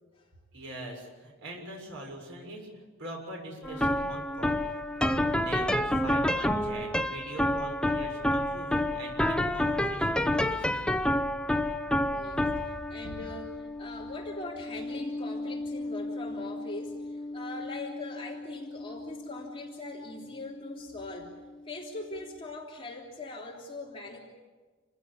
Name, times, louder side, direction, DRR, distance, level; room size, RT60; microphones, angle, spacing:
voice 1, 0.5-4.8 5.3-10.9 12.5-12.6, right 1 dB, 65° right, 0 dB, 6.7 m, -42 dB
sound 1, 3.6-20.8, left 1 dB, 5° left, 0.7 m, -30 dB
voice 2, 12.1-21.3 21.7-24.2, left 2 dB, 25° left, -2 dB, 3.3 m, -41 dB
28.5 x 16.0 x 8.6 m, 1.3 s
head